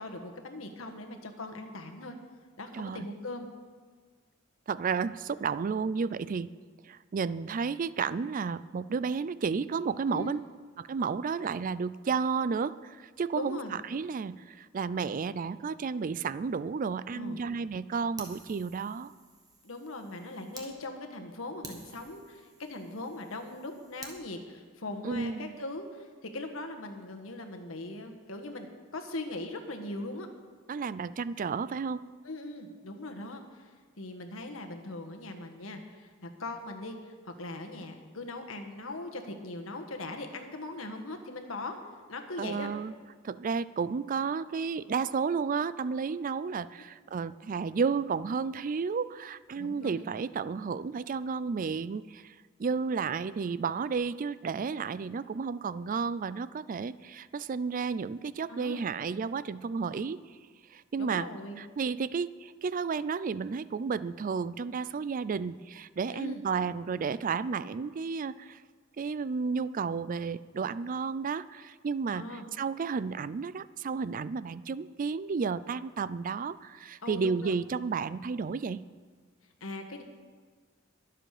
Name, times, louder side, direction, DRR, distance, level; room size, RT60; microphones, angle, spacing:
voice 1, 0.0-2.2 2.6-3.5 10.1-10.4 13.3-13.8 17.1-17.4 19.6-30.3 32.2-41.8 42.1-42.7 49.5-50.0 58.5-58.8 61.0-61.6 66.1-66.4 72.1-72.4 77.0-77.5 79.6-80.0, left 2 dB, 85° left, 5 dB, 1.5 m, -40 dB
voice 2, 2.7-3.1 4.7-6.5 6.8-10.4 10.8-19.1 25.0-25.5 30.7-32.0 42.4-42.9 43.2-52.3 52.6-60.2 60.7-61.3 61.6-68.6 69.0-78.8, right 5 dB, 40° right, 16 dB, 0.4 m, -32 dB
Fire, 18.2-20.7 21.1-21.2 21.6-24.2, right 3 dB, 20° right, 1.7 m, -50 dB
22.5 x 7.7 x 5.0 m, 1.5 s
head